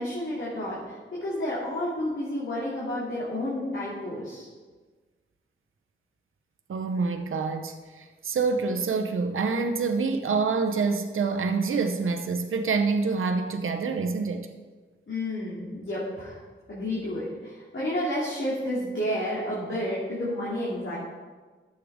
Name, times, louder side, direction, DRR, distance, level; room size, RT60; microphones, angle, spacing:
voice 1, 0.0-4.5 15.1-16.4 16.7-21.0, left 1 dB, 70° left, -8 dB, 2.7 m, -31 dB
voice 2, 6.7-14.5, right 4 dB, 90° right, 5 dB, 0.7 m, -26 dB
13.5 x 7.6 x 3.6 m, 1.4 s
wide cardioid pair, 110°, 20 cm